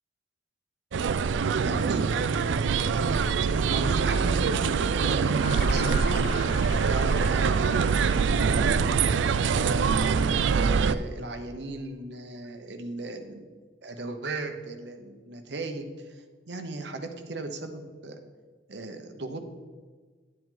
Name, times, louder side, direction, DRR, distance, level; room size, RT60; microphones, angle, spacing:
sound 1, 0.9-10.9, right 5 dB, 90° right, 0.4 m, -24 dB
voice 1, 1.6-3.2 3.7-4.4 4.9-6.4 6.8-13.5 13.8-18.2 18.7-19.4, right 2 dB, 70° right, 5 dB, 1.0 m, -37 dB
sound 2, 5.4-9.8, left 5 dB, 55° left, 0.8 m, -42 dB
10.5 x 7.7 x 3.9 m, 1.4 s
head